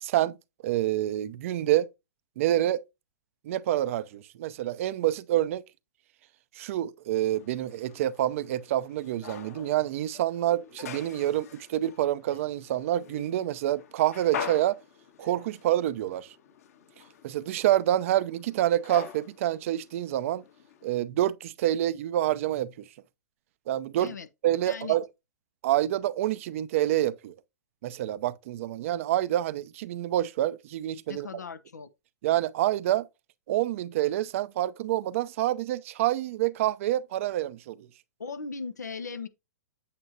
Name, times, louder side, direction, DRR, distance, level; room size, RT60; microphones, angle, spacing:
voice 1, 0.0-0.3 0.6-1.9 2.4-2.8 3.5-5.6 6.6-14.8 15.2-16.3 17.2-20.4 20.8-22.9 23.7-24.1 24.4-25.1 25.6-27.3 27.8-31.3 32.2-33.1 33.5-37.9, right 13 dB, 55° right, 0.7 m, -27 dB
sound 1, 7.3-21.0, left 7 dB, 65° left, 1.8 m, -44 dB
voice 2, 24.7-25.0 31.1-31.9 38.2-39.3, left 5 dB, 85° left, 1.2 m, -38 dB
8.5 x 7.7 x 2.8 m
hypercardioid pair, 120°, 9 cm